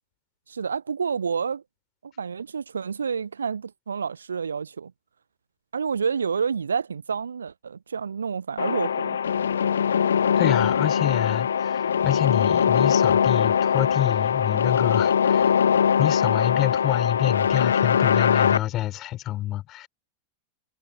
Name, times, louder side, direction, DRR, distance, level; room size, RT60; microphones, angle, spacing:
voice 1, 0.5-1.6 2.0-4.9 5.7-9.2, right 6 dB, 70° right, 0.7 m, -29 dB
sound 1, 8.6-18.6, left 7 dB, 70° left, 0.9 m, -22 dB
voice 2, 10.4-15.5 16.0-19.9, left 14 dB, 35° left, 3.9 m, -27 dB
figure-of-eight pair, 90°, 0 cm